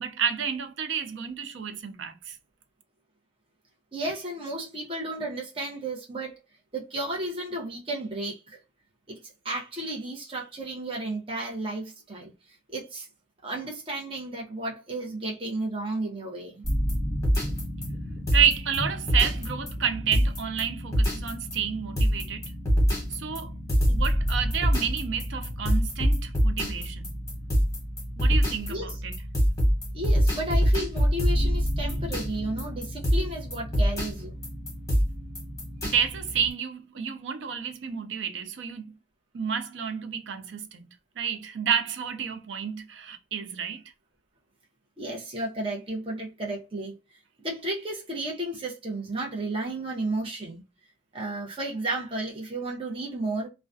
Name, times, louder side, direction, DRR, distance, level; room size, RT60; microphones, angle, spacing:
voice 1, 0.0-2.4 18.3-22.5 23.1-23.5 23.9-27.2 28.2-29.2 35.8-38.9 39.3-40.9 41.2-43.8, right 7 dB, 85° right, 0.5 m, -30 dB
voice 2, 3.9-6.3 6.7-8.6 9.1-9.2 9.4-12.3 12.7-13.1 13.4-16.6 28.7-28.9 29.9-34.4 45.0-47.0 47.4-50.6 51.1-53.5, right 2 dB, 30° right, 0.7 m, -33 dB
sound 1, 16.6-36.5, equal, 20° left, 1.0 m, -26 dB
2.3 x 2.1 x 2.5 m
head